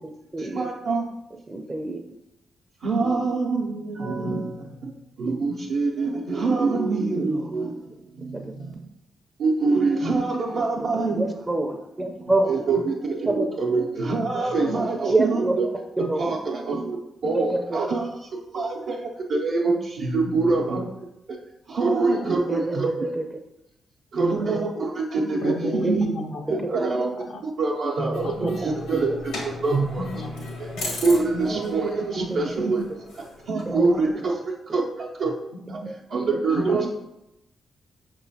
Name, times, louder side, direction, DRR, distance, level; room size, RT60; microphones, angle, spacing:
voice 1, 0.4-1.1 2.8-8.7 9.4-11.2 12.0-12.2 12.5-15.7 16.0-17.0 17.2-20.9 21.3-21.4 21.7-23.1 24.1-26.1 26.5-29.3 29.6-30.1 30.6-32.8 33.1-36.9, right 3 dB, 70° right, -6 dB, 0.6 m, -25 dB
voice 2, 1.5-2.0 7.2-7.4 8.3-8.5 10.8-12.5 13.3-13.5 15.1-15.5 16.0-16.4 17.3-17.8 22.5-23.2 25.8-26.0 26.6-26.7 28.4-28.5 29.1-29.2 32.3-32.7 33.8-33.9 35.9-36.0 36.3-36.4, right 2 dB, 25° right, 3 dB, 0.5 m, -26 dB
voice 3, 25.4-26.6 27.2-27.4 28.2-28.5 29.5-29.7 30.1-30.5 36.7-36.9, left 2 dB, 70° left, 2 dB, 0.5 m, -35 dB
sound 1, 28.1-34.3, left 2 dB, 85° left, 1.2 m, -37 dB
5.5 x 3.0 x 2.7 m, 0.90 s
hypercardioid pair, 45°, 0 cm